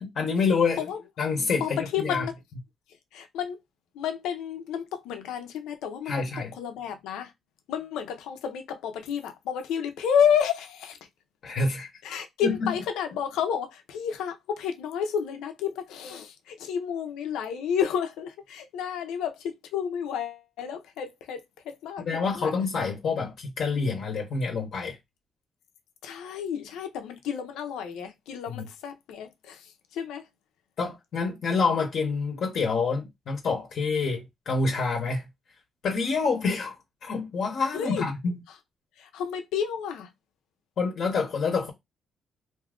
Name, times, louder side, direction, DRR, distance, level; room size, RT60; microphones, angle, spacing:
voice 1, 0.0-0.9 1.2-2.3 6.1-6.5 11.4-11.9 12.4-12.7 22.0-25.0 28.5-28.6 30.8-35.2 35.8-38.4 40.8-41.7, left 4 dB, 60° left, 0.8 m, -27 dB
voice 2, 1.6-2.4 3.1-3.6 3.9-6.3 6.5-7.3 7.7-11.0 12.0-22.5 26.0-30.3 37.7-38.1 38.5-38.6 39.0-40.1, left 8 dB, 90° left, 0.6 m, -31 dB
2.7 x 2.4 x 3.6 m
cardioid pair, 90°, 0 cm